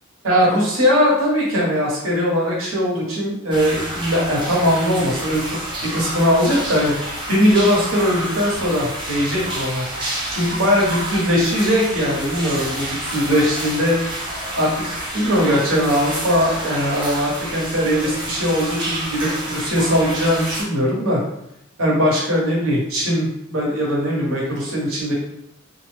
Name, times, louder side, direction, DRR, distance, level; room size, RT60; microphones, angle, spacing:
voice 1, 0.2-5.4 5.8-6.9 7.3-9.9 10.3-14.0 14.6-14.8 15.1-21.2 21.8-25.1, equal, 80° right, -4 dB, 1.0 m, -20 dB
sound 1, 3.5-20.6, right 1 dB, 25° right, 0.6 m, -29 dB
2.5 x 2.0 x 3.2 m, 0.78 s
head